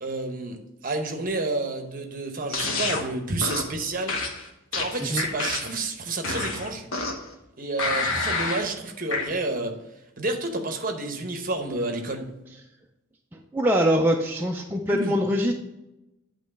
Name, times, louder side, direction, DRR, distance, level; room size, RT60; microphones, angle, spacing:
voice 1, 0.0-4.2 4.7-6.9 7.6-9.7 10.2-12.3 14.9-15.2, right 2 dB, 40° right, 5 dB, 0.9 m, -30 dB
sound 1, 2.5-3.0 3.4-3.7 4.1-5.8 6.2-7.3 7.8-8.7 9.1-9.3, left 3 dB, 85° left, 1.1 m, -28 dB
voice 2, 13.3-15.5, equal, 10° right, 0 dB, 0.4 m, -23 dB
9.2 x 3.1 x 5.3 m, 0.93 s
head